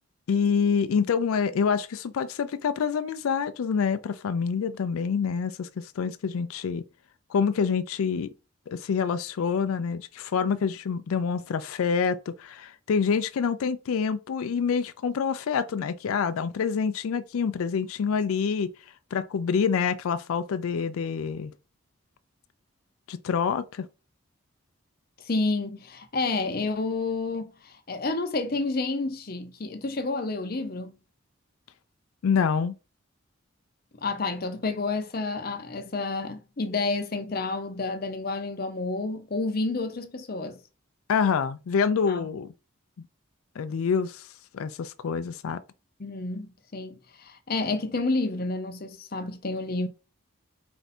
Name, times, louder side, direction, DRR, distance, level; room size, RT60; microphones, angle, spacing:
voice 1, 0.3-6.8 7.3-8.3 8.7-18.7 19.1-21.5 23.1-23.9 32.2-32.7 41.1-42.5 43.6-44.3 44.5-45.6, left 6 dB, 90° left, 0.4 m, -26 dB
voice 2, 25.2-30.9 34.0-40.6 42.1-42.3 46.0-49.9, left 3 dB, 45° left, 0.7 m, -30 dB
4.5 x 2.6 x 4.2 m
head